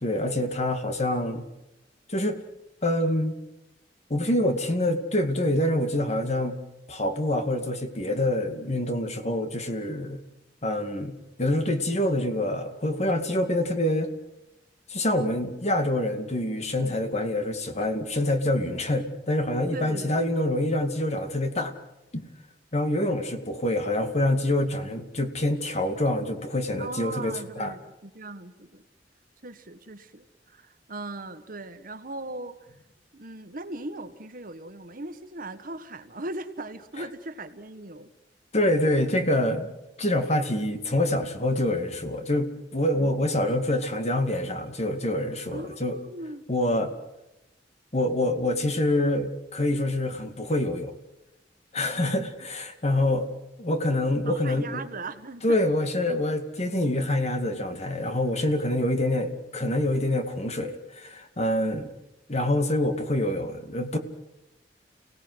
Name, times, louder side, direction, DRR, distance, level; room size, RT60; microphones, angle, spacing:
voice 1, 0.0-1.5 2.1-2.4 2.8-3.4 4.1-6.6 6.9-10.2 10.6-14.1 14.9-21.7 22.1-22.2 22.7-27.7 38.5-39.7 40.0-46.0 46.5-46.9 47.9-51.0 51.7-53.3 53.6-54.8 55.4-61.9 62.3-64.0, left 1 dB, 40° left, 7 dB, 2.3 m, -26 dB
voice 2, 19.7-20.2 26.8-28.8 29.4-32.6 33.1-38.1 45.5-46.5 54.3-55.6, right 2 dB, 50° right, 10 dB, 1.6 m, -38 dB
30.0 x 18.0 x 8.0 m, 0.92 s
head